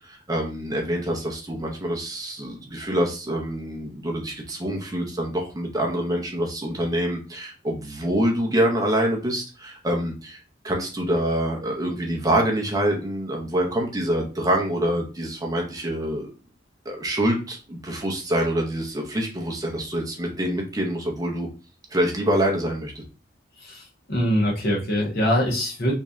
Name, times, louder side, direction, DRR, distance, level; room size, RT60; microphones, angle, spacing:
voice 1, 0.0-10.4 10.6-16.3 16.9-21.5 21.9-23.0, right 1 dB, 20° right, 0 dB, 0.6 m, -26 dB
voice 2, 23.6-25.9, equal, 55° left, -3 dB, 1.2 m, -23 dB
3.1 x 2.7 x 3.5 m, 0.33 s
head